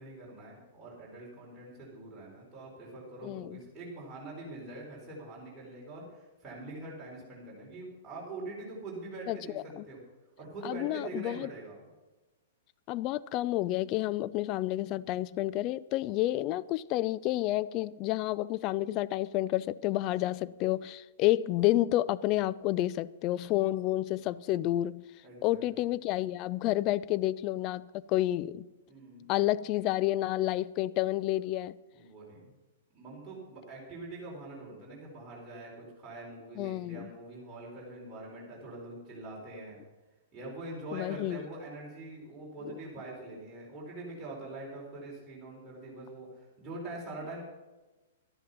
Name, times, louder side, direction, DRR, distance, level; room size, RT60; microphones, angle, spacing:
voice 1, 0.0-9.6 9.8-10.0 10.4-11.9 25.2-25.6 28.9-29.3 31.9-32.5 32.9-39.8 40.3-47.4, right 2 dB, 15° right, 5.2 m, -44 dB
voice 2, 3.2-3.6 9.3-9.8 10.6-11.5 12.9-25.0 25.4-28.7 29.3-31.8 36.6-37.1 40.9-41.5 42.6-42.8, left 15 dB, 35° left, 0.3 m, -30 dB
12.0 x 10.5 x 5.8 m
figure-of-eight pair, 110°, 0 cm